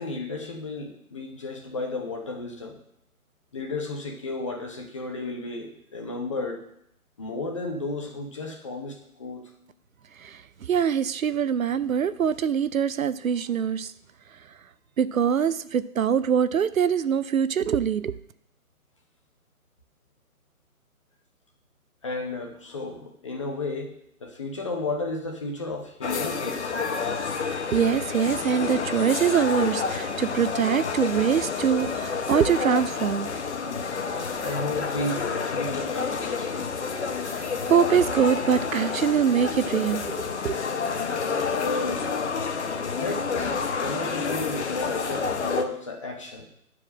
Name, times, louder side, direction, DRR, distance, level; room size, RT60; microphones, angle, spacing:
voice 1, 0.0-2.8 3.5-6.6 7.2-9.5 22.0-26.9 34.4-36.6 41.5-42.2 43.0-46.5, left 2 dB, 20° left, 2 dB, 0.8 m, -33 dB
voice 2, 10.2-13.9 15.0-18.1 27.7-33.3 37.4-40.6, right 7 dB, 65° right, 14 dB, 0.6 m, -24 dB
sound 1, 26.0-45.7, left 5 dB, 50° left, 1.0 m, -29 dB
9.6 x 4.9 x 6.1 m, 0.73 s
figure-of-eight pair, 150°, 44 cm